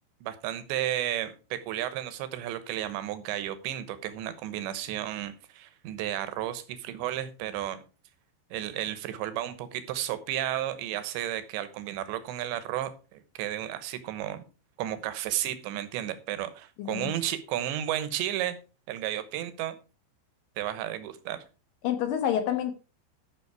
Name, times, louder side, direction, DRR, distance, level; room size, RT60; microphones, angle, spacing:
voice 1, 0.2-7.8 8.5-14.4 14.8-18.6 18.9-19.7 20.6-21.4, right 12 dB, 75° right, 12 dB, 3.3 m, -33 dB
voice 2, 16.8-17.1 21.8-22.7, left 10 dB, 70° left, 8 dB, 2.3 m, -28 dB
12.5 x 6.3 x 4.8 m, 0.33 s
omnidirectional pair, 5.3 m